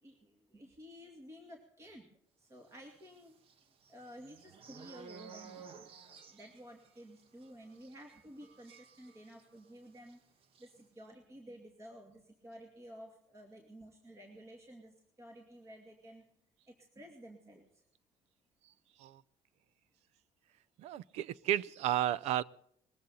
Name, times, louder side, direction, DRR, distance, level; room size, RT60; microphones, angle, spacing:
voice 1, 0.0-2.1 2.4-3.4 3.9-10.2 10.6-16.2 16.7-17.8, equal, 25° right, 2 dB, 2.4 m, -53 dB
sound 1, 3.0-9.7 10.0-10.1 10.4-10.7, right 6 dB, 55° right, 1.3 m, -55 dB
voice 2, 20.8-22.4, right 12 dB, 80° right, 21 dB, 0.6 m, -33 dB
20.5 x 15.5 x 4.2 m, 0.68 s
cardioid pair, 145°, 11 cm